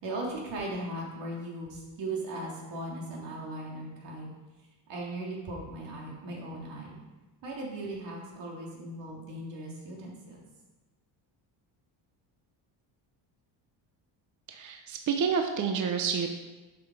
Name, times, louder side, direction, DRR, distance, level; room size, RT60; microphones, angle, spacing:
voice 1, 0.0-4.3 4.9-7.0 7.4-10.4, right 2 dB, 65° right, -3 dB, 3.3 m, -38 dB
voice 2, 14.5-16.3, right 6 dB, 40° right, 4 dB, 0.9 m, -29 dB
12.0 x 6.2 x 4.9 m, 1.2 s
cardioid pair, 155°, 46 cm